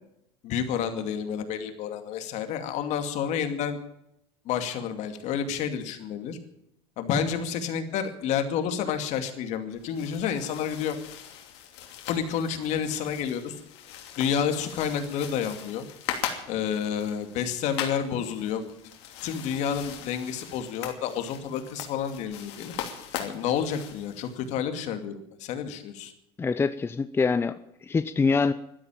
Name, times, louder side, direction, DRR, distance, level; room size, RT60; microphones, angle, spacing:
voice 1, 0.4-3.8 4.5-6.4 7.0-11.0 12.1-13.5 14.2-15.8 16.5-18.6 19.2-22.7 23.2-26.1, left 8 dB, 55° left, 7 dB, 2.4 m, -29 dB
sound 1, 9.7-24.6, left 9 dB, 75° left, 2.8 m, -40 dB
voice 2, 26.4-28.5, left 4 dB, 15° left, 12 dB, 0.6 m, -25 dB
12.5 x 12.5 x 9.1 m, 0.81 s
supercardioid pair, 105°, 14 cm